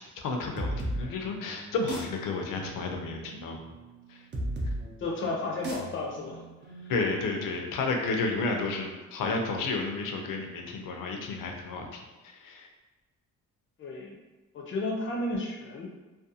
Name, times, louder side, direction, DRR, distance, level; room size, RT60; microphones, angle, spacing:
voice 1, 0.2-3.6 4.1-4.2 6.9-12.7, left 3 dB, 85° left, 3 dB, 0.5 m, -32 dB
sound 1, 0.6-7.9, right 1 dB, 35° right, 0.6 m, -37 dB
voice 2, 5.0-6.4 6.8-6.9 13.8-14.2 14.5-15.9, left 2 dB, 40° left, 0 dB, 0.5 m, -33 dB
2.4 x 2.3 x 2.6 m, 1.2 s
cardioid pair, 110°, 32 cm